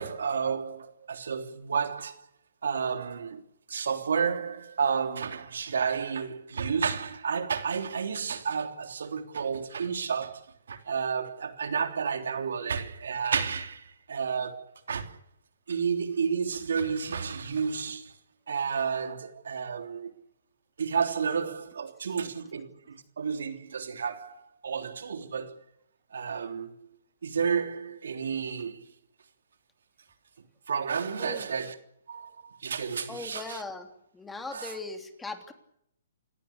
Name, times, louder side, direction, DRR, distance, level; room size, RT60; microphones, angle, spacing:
voice 1, 0.0-2.2 2.6-3.4 3.7-10.4 10.7-15.2 15.7-18.1 18.5-20.1 20.8-25.6 26.1-27.0 27.2-28.9 30.7-31.7 32.1-33.6 34.5-34.8, right 6 dB, 75° right, 3.3 m, -31 dB
voice 2, 31.2-31.5 33.1-33.9 34.1-35.5, left 3 dB, 5° left, 3.1 m, -39 dB
29.0 x 17.5 x 8.5 m
hypercardioid pair, 140°, 0 cm